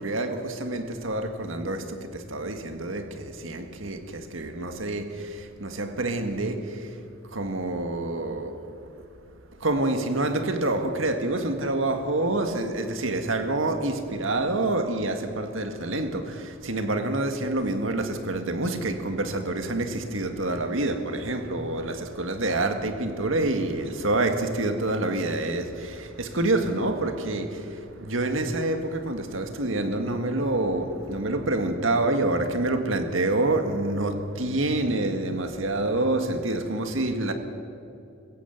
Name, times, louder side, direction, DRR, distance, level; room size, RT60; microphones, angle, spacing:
voice 1, 0.0-7.0 7.3-8.9 9.6-37.3, right 2 dB, 80° right, 1.8 m, -27 dB
21.0 x 16.0 x 8.0 m
head